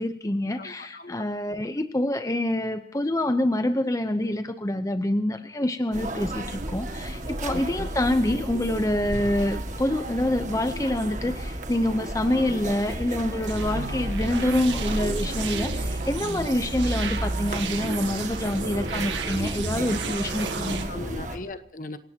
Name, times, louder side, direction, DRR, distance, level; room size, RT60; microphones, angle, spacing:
voice 1, 0.0-21.1, left 1 dB, 20° left, 8 dB, 0.7 m, -26 dB
voice 2, 0.6-1.2 7.4-7.9 20.0-20.4 20.9-22.0, left 2 dB, 45° left, 10 dB, 1.2 m, -39 dB
sound 1, 5.9-21.4, right 1 dB, 40° right, 1.9 m, -33 dB
sound 2, 13.5-20.8, right 3 dB, 85° right, 1.9 m, -32 dB
27.5 x 17.0 x 2.9 m, 0.70 s
head